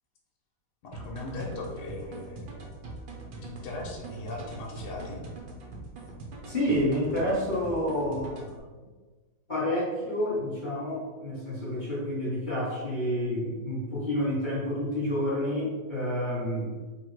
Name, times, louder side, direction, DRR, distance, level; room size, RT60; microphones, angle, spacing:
voice 1, 0.8-2.6 3.4-5.2, left 2 dB, 65° left, -2 dB, 1.3 m, -38 dB
sound 1, 0.9-8.6, right 3 dB, 85° right, 0.5 m, -42 dB
voice 2, 6.4-8.6 9.5-16.8, equal, 30° left, -9 dB, 1.2 m, -29 dB
3.9 x 2.3 x 4.5 m, 1.3 s
omnidirectional pair, 2.0 m